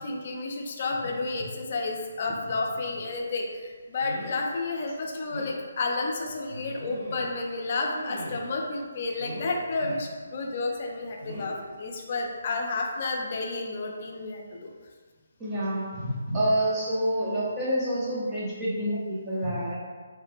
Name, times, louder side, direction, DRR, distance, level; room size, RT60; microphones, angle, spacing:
voice 1, 0.0-14.7, left 3 dB, 45° left, 1 dB, 0.5 m, -31 dB
sound 1, 3.0-3.2 4.0-4.5 4.9-5.0 5.3-5.6 6.5-7.4 7.8-8.6 9.2-9.6 11.2-11.6 12.8-13.0 13.4-13.5, right 1 dB, 50° right, 0.9 m, -40 dB
voice 2, 15.4-19.8, right 1 dB, 15° right, -8 dB, 0.6 m, -28 dB
3.2 x 2.0 x 3.2 m, 1.5 s
hypercardioid pair, 155°, 0 cm